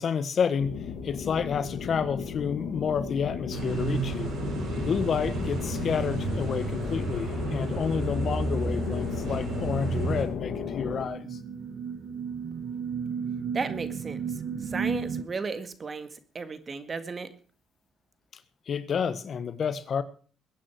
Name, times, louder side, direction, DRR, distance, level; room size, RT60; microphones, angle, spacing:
voice 1, 0.0-4.3 4.8-11.4 18.7-20.0, left 6 dB, 50° left, 13 dB, 1.4 m, -30 dB
sound 1, 0.6-11.1, left 7 dB, 70° left, 2.3 m, -35 dB
sound 2, 3.5-10.2, right 3 dB, 70° right, 6.1 m, -32 dB
sound 3, 10.3-15.2, right 6 dB, 50° right, 1.5 m, -34 dB
voice 2, 13.5-14.2 14.6-17.3, right 4 dB, 35° right, 11 dB, 1.8 m, -34 dB
22.0 x 9.3 x 4.7 m, 0.40 s
cardioid pair, 100°, 0 cm